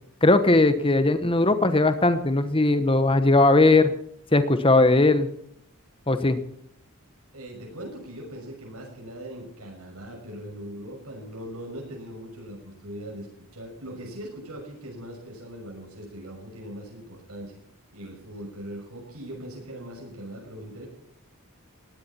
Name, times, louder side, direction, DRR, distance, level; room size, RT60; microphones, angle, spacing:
voice 1, 0.2-3.9 4.3-5.3 6.1-6.4, left 2 dB, 25° left, 11 dB, 1.1 m, -19 dB
voice 2, 7.3-13.3 13.5-17.6 17.9-20.9, equal, 80° right, -1 dB, 6.4 m, -40 dB
20.0 x 16.5 x 4.4 m, 0.71 s
head